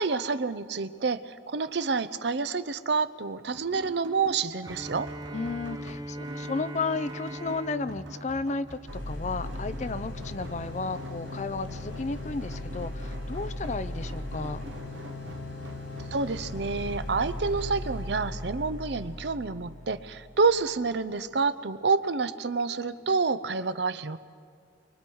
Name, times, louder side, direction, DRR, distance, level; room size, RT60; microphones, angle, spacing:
voice 1, 0.0-5.1 16.1-24.2, right 4 dB, 65° right, 12 dB, 0.7 m, -28 dB
sound 1, 3.4-17.9, right 2 dB, 85° right, 1.2 m, -47 dB
Bowed string instrument, 4.6-9.6, right 1 dB, 20° right, 0.6 m, -40 dB
voice 2, 5.3-8.8 9.1-14.6, left 3 dB, 40° left, 12 dB, 0.5 m, -33 dB
sound 2, 8.9-20.7, left 1 dB, 85° left, 4.5 m, -38 dB
30.0 x 23.5 x 4.7 m, 2.1 s
head